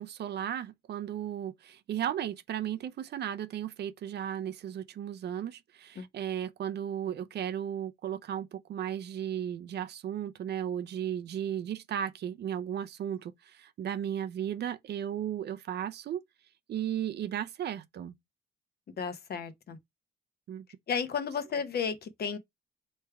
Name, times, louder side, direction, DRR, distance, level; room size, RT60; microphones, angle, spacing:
voice 1, 0.0-16.2 16.7-18.1 20.5-20.7, right 10 dB, 60° right, 0.5 m, -35 dB
voice 2, 19.0-19.8 20.9-22.4, left 6 dB, 55° left, 0.9 m, -33 dB
3.4 x 3.2 x 4.6 m
cardioid pair, 90°, 20 cm